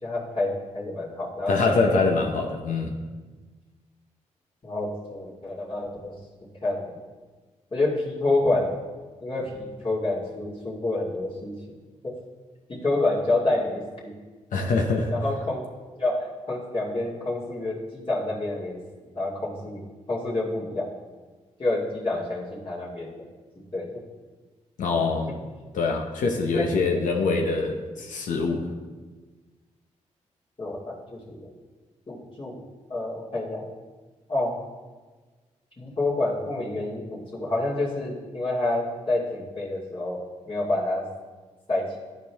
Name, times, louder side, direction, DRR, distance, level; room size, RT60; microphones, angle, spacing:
voice 1, 0.0-2.0 4.6-6.2 6.6-7.0 7.7-8.7 9.2-11.5 12.0-12.2 12.7-14.1 15.1-15.6 16.0-18.8 19.1-19.8 20.1-20.9 21.6-23.1 23.7-24.0 25.3-25.4 26.5-26.6 30.6-31.5 32.1-32.6 32.9-33.7 34.3-34.5 35.8-41.1 41.7-42.0, left 2 dB, 40° left, -7 dB, 2.4 m, -28 dB
voice 2, 1.5-2.9 14.5-15.1 24.8-25.3 25.7-28.7, left 4 dB, 75° left, 2 dB, 0.8 m, -24 dB
11.5 x 4.6 x 3.5 m, 1.3 s
supercardioid pair, 50°, 13 cm